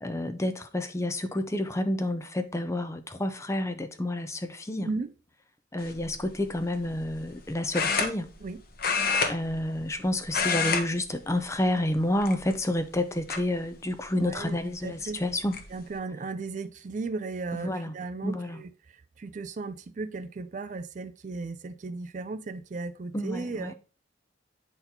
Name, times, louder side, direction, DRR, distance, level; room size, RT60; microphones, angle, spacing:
voice 1, 0.0-4.9 5.7-8.3 9.2-15.5 17.6-17.9 18.2-18.6 23.1-23.7, left 1 dB, 15° left, 0.5 m, -29 dB
voice 2, 4.8-5.1 8.4-8.6 14.1-15.2 15.7-23.7, right 3 dB, 40° right, 0.4 m, -36 dB
sound 1, 5.8-6.1 7.7-8.5 8.8-10.0 10.3-10.8 11.1-11.4 12.2-12.7 13.3-13.4 14.8-14.9 15.2-15.6, left 5 dB, 50° left, 0.9 m, -27 dB
9.1 x 4.0 x 2.9 m
head